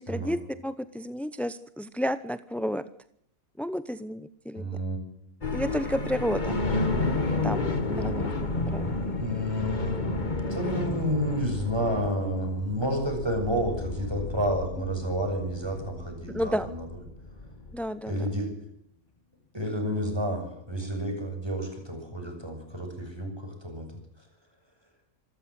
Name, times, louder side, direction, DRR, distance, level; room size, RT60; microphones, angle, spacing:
voice 1, 0.0-2.8 3.6-4.7 5.5-6.6 7.4-9.0 16.3-16.7 17.7-18.3, equal, ahead, 14 dB, 0.4 m, -31 dB
voice 2, 4.5-5.0 9.2-10.0 10.5-16.9 18.1-18.5 19.5-23.9, equal, 15° right, 4 dB, 7.4 m, -30 dB
sound 1, 5.4-17.9, left 2 dB, 30° left, 1.8 m, -31 dB
27.5 x 14.0 x 7.9 m, 0.70 s
omnidirectional pair, 1.6 m